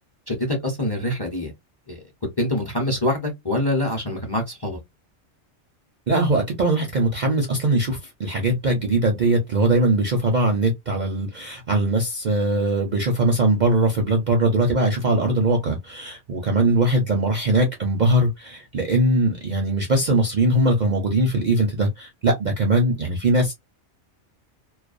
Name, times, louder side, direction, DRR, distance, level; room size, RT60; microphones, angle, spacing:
voice 1, 0.3-1.5 1.9-2.0 2.4-4.8, left 1 dB, 25° left, 0.6 m, -25 dB
voice 2, 6.1-23.5, right 2 dB, 50° right, 0.5 m, -21 dB
2.4 x 2.2 x 2.4 m
omnidirectional pair, 1.2 m